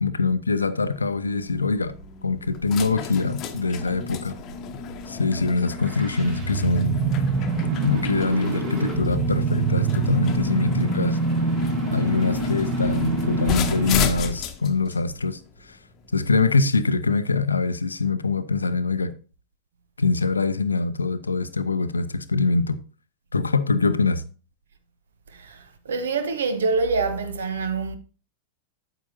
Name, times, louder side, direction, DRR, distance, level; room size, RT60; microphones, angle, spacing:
voice 1, 0.0-1.9 2.2-4.3 5.1-6.9 7.8-11.2 11.9-15.4 15.7-15.8 16.1-19.1 20.0-22.8 23.3-24.2, left 3 dB, 80° left, 0.6 m, -23 dB
sound 1, 0.8-16.4, left 6 dB, 35° left, 1.0 m, -32 dB
sound 2, 5.6-14.3, right 4 dB, 45° right, 3.8 m, -26 dB
voice 2, 25.3-28.0, right 4 dB, 65° right, 1.0 m, -26 dB
8.9 x 8.2 x 2.7 m
figure-of-eight pair, 90°, 0 cm